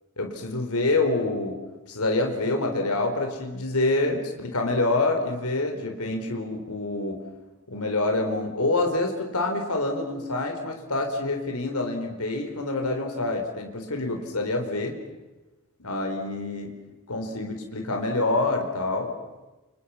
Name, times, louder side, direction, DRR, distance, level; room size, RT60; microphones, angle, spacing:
voice 1, 0.2-1.6 1.9-7.2 7.7-15.0 15.8-16.7 17.1-19.1, left 2 dB, 75° left, 3 dB, 4.5 m, -26 dB
30.0 x 28.0 x 5.9 m, 1.1 s
head